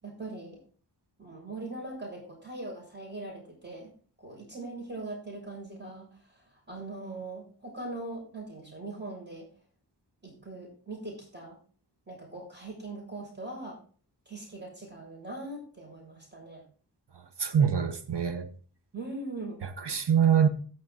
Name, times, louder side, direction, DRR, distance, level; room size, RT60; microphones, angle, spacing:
voice 1, 0.0-0.6 1.2-3.9 4.2-9.5 10.2-11.6 12.1-13.8 14.2-16.6 18.9-19.6, right 2 dB, 25° right, 6.8 m, -41 dB
voice 2, 17.4-18.5 19.6-20.5, right 7 dB, 75° right, 1.2 m, -24 dB
16.5 x 6.3 x 4.0 m
wide cardioid pair, 60°, 41 cm